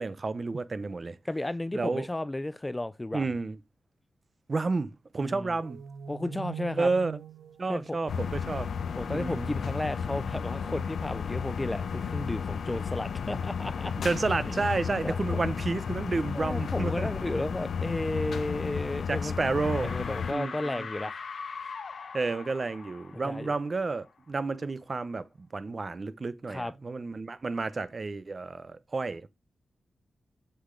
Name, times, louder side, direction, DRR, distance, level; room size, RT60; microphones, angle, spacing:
voice 1, 0.0-1.2 1.7-2.1 3.1-3.6 4.5-5.8 6.8-7.2 7.6-8.7 9.1-9.5 14.0-17.1 19.1-19.9 20.3-20.9 22.1-29.3, right 3 dB, 35° right, 0.8 m, -31 dB
voice 2, 1.2-3.2 5.2-5.5 6.1-6.9 7.7-8.0 9.0-13.9 14.5-14.7 15.0-15.4 16.3-19.4 19.8-21.2 23.2-23.6 26.5-26.7, left 1 dB, 15° left, 0.4 m, -33 dB
sound 1, 5.6-9.0, right 8 dB, 85° right, 0.8 m, -43 dB
sound 2, 8.1-20.3, left 6 dB, 75° left, 0.6 m, -33 dB
sound 3, 19.0-19.2 19.5-24.1, left 5 dB, 60° left, 1.1 m, -41 dB
7.9 x 6.6 x 3.8 m
wide cardioid pair, 125°, 0 cm